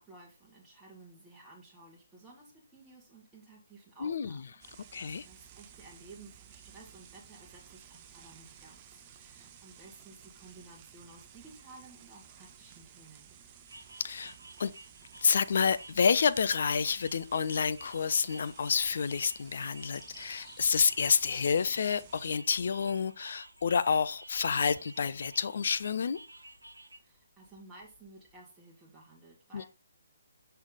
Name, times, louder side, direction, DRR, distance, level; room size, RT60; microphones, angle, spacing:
voice 1, 0.0-4.4 4.7-13.3 27.0-29.7, right 2 dB, 10° right, 1.5 m, -55 dB
sound 1, 4.6-22.3, right 9 dB, 25° right, 0.7 m, -55 dB
voice 2, 4.9-5.3 14.0-14.3 14.6-14.7 15.2-26.2 29.5-29.6, left 6 dB, 50° left, 0.5 m, -29 dB
sound 2, 13.7-27.0, right 1 dB, 80° right, 1.2 m, -52 dB
sound 3, 19.4-28.5, left 4 dB, 15° left, 1.1 m, -59 dB
6.2 x 5.7 x 3.8 m
figure-of-eight pair, 140°, 0 cm